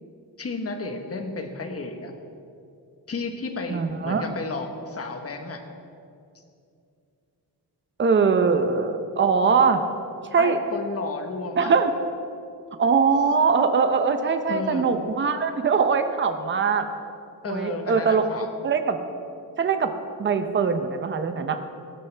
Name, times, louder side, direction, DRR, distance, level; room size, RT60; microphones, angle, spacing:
voice 1, 0.4-2.1 3.1-5.6 10.4-11.7 14.5-14.9 17.4-18.5, left 3 dB, 35° left, 5 dB, 1.2 m, -32 dB
voice 2, 3.7-4.3 8.0-9.8 10.3-10.6 11.6-11.9 12.8-16.9 17.5-18.2 18.6-19.0 19.6-19.9 20.2-21.6, right 5 dB, 30° right, 8 dB, 0.7 m, -22 dB
17.5 x 13.0 x 3.4 m, 2.5 s
wide cardioid pair, 170°, 42 cm